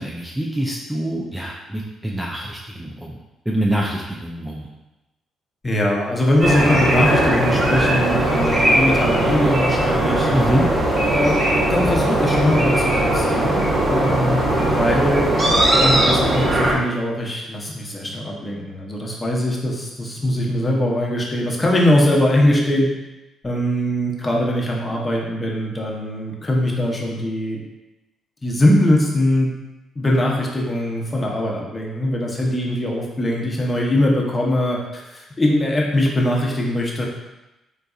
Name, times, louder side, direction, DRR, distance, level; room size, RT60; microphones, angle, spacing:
voice 1, 0.0-3.2 3.5-4.7 10.3-10.7, right 1 dB, 10° right, -3 dB, 0.4 m, -25 dB
voice 2, 5.6-10.3 11.1-11.4 11.7-13.6 13.9-15.3 15.8-22.9 23.4-27.6 28.4-29.5 30.0-37.0, left 1 dB, 25° left, -2 dB, 0.7 m, -21 dB
sound 1, 6.4-16.7, right 1 dB, 40° right, 0.8 m, -19 dB
3.9 x 2.6 x 2.3 m, 1.0 s
cardioid pair, 90°, 0 cm